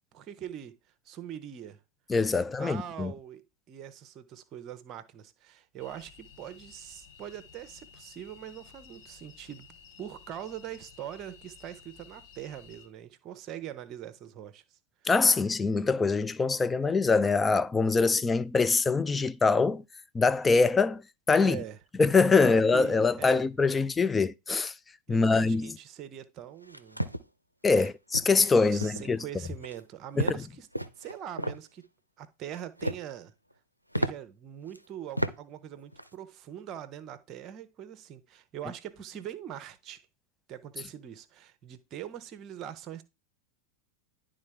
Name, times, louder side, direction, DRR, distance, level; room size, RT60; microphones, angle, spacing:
voice 1, 0.1-0.8 1.0-1.8 2.3-9.7 10.0-14.8 21.4-21.8 22.4-23.5 25.1-27.0 28.7-30.7 31.0-31.9 32.2-33.3 33.9-40.0 40.5-43.0, right 10 dB, 35° right, 0.8 m, -42 dB
voice 2, 2.1-3.1 15.1-19.8 20.1-21.0 21.3-21.6 22.0-24.7 25.1-25.8 27.6-29.2 30.2-30.3, left 4 dB, 15° left, 0.4 m, -24 dB
sound 1, 5.8-12.9, left 6 dB, 40° left, 2.2 m, -54 dB
sound 2, 26.6-27.2 27.7-27.9 28.1-28.4 28.8-29.1 29.4-29.8 30.2-30.4 30.7-31.6 32.5-33.1 33.5-33.6 33.9-34.1 34.7-34.8 35.2-35.3 35.7-36.1, equal, 90° right, 0.5 m, -32 dB
11.0 x 3.7 x 3.4 m
figure-of-eight pair, 90°, 0 cm